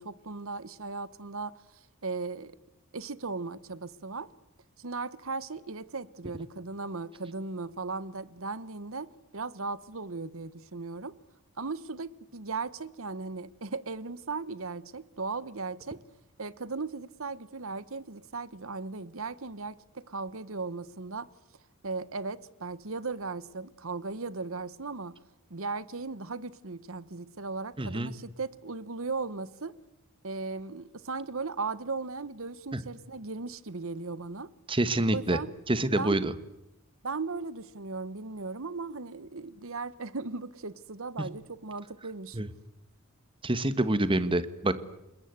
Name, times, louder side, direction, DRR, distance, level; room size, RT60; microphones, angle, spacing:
voice 1, 0.0-1.5 2.0-2.6 2.9-4.3 4.8-11.1 11.6-16.0 16.4-21.3 21.8-25.1 25.5-29.7 30.2-34.5 35.1-35.5 35.9-36.3 37.0-42.4, right 4 dB, 65° right, 1.1 m, -37 dB
voice 2, 27.8-28.1 32.7-32.8 34.7-35.4 35.7-36.3 42.3-42.5 43.4-44.7, right 1 dB, 25° right, 1.3 m, -26 dB
29.5 x 20.0 x 8.1 m
head